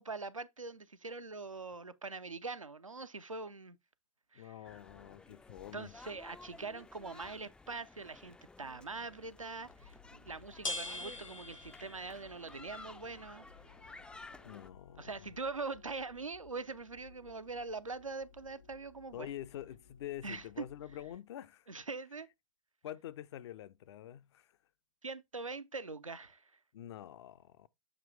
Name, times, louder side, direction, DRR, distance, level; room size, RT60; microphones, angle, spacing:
voice 1, 0.0-3.8 4.3-4.5 5.7-13.5 15.0-19.3 20.2-20.6 21.7-22.3 25.0-26.5, right 3 dB, 90° right, 0.5 m, -43 dB
voice 2, 4.3-6.0 14.4-15.3 19.1-21.7 22.8-24.6 26.7-27.7, left 12 dB, 60° left, 0.6 m, -46 dB
sound 1, 4.6-14.7, left 3 dB, 5° left, 0.3 m, -55 dB
sound 2, 9.7-21.1, left 1 dB, 85° left, 0.9 m, -49 dB
7.3 x 2.9 x 4.6 m
figure-of-eight pair, 90°, 16 cm